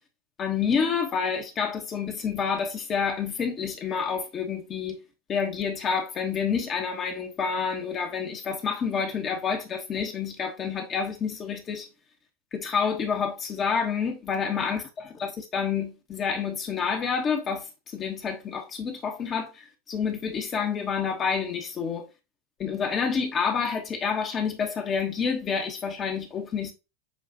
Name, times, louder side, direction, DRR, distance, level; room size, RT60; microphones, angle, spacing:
voice 1, 0.4-5.0 5.3-11.9 12.5-22.1 22.6-26.7, left 6 dB, 30° left, 1.0 m, -28 dB
7.2 x 2.4 x 2.7 m
figure-of-eight pair, 85°, 0 cm